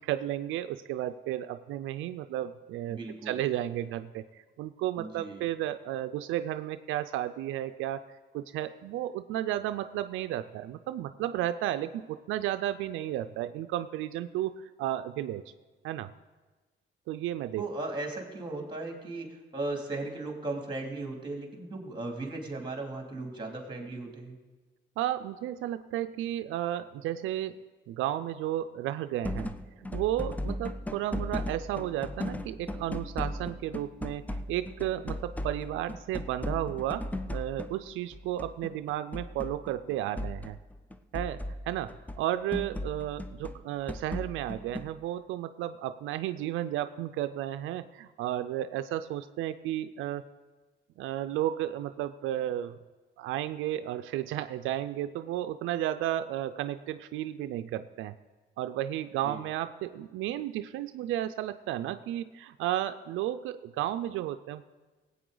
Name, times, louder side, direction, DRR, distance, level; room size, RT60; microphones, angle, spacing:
voice 1, 0.0-15.4 15.8-16.1 17.1-17.6 25.0-27.6 27.9-29.5 29.8-40.6 41.1-41.4 41.7-50.2 51.0-52.8 53.2-58.1 58.6-64.6, right 13 dB, 90° right, 10 dB, 0.4 m, -33 dB
voice 2, 2.9-3.4 5.0-5.4 17.6-24.4 59.2-59.4, right 2 dB, 25° right, 1 dB, 2.6 m, -37 dB
sound 1, 29.2-42.3 42.5-45.0, left 1 dB, 10° left, 0.5 m, -37 dB
17.5 x 8.4 x 3.9 m, 1.3 s
cardioid pair, 90°, 20 cm